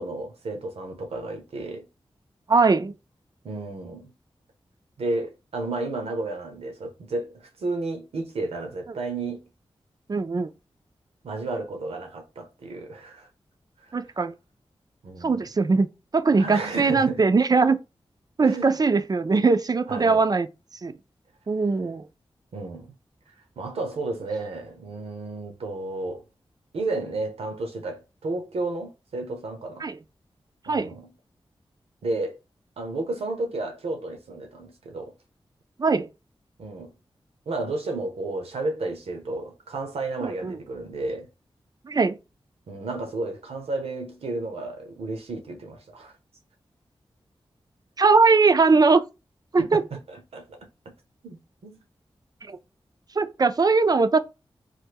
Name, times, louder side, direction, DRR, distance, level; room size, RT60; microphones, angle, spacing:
voice 1, 0.0-1.9 3.4-4.1 5.0-9.4 11.2-13.3 13.9-14.0 15.0-15.4 16.4-17.2 18.4-18.7 19.9-20.2 22.5-22.9 23.6-26.2 26.7-29.8 30.7-31.1 32.0-32.4 32.8-35.1 36.6-36.9 37.5-41.3 42.7-46.1 49.6-50.6 50.9-51.0 51.2-51.8, right 2 dB, 90° right, 0.7 m, -32 dB
voice 2, 2.5-2.9 10.1-10.5 13.9-14.3 15.2-17.8 18.4-20.5 20.8-20.9 21.5-22.1 29.8-30.0 30.7-30.9 35.8-36.1 40.2-40.5 41.8-42.2 48.0-49.0 49.5-49.8 52.5-52.6 53.2-54.2, right 4 dB, 40° right, 0.4 m, -20 dB
3.2 x 2.1 x 3.4 m
cardioid pair, 45°, 10 cm